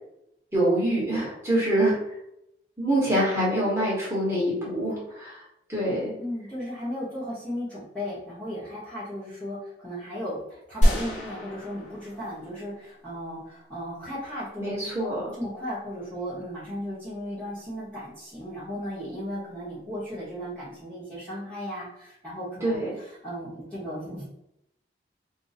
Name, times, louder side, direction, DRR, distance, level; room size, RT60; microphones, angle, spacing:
voice 1, 0.5-2.0 2.8-5.4 5.7-6.1 14.6-15.3 22.6-22.9, right 1 dB, 15° right, -7 dB, 1.1 m, -25 dB
voice 2, 6.2-15.1 15.4-22.8 23.2-24.3, equal, 5° left, -11 dB, 1.0 m, -35 dB
sound 1, 10.8-13.1, equal, 40° left, 0.8 m, -26 dB
2.5 x 2.2 x 4.0 m, 0.81 s
head